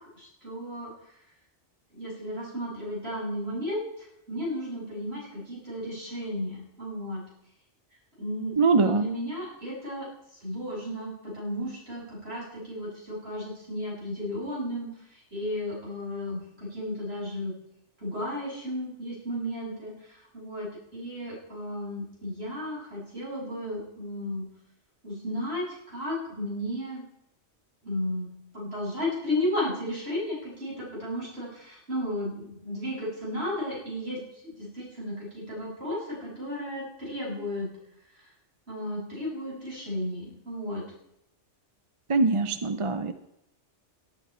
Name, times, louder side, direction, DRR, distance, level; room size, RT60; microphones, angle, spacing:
voice 1, 0.2-0.9 1.9-3.8 4.3-7.2 8.2-10.1 10.4-17.5 18.0-24.5 25.0-27.0 27.8-28.3 28.5-34.2 34.4-37.7 38.7-40.8, left 1 dB, 60° right, -5 dB, 7.4 m, -34 dB
voice 2, 8.6-9.1 42.1-43.1, right 4 dB, 30° right, 11 dB, 0.7 m, -23 dB
18.0 x 11.5 x 4.4 m, 0.82 s
omnidirectional pair, 1.2 m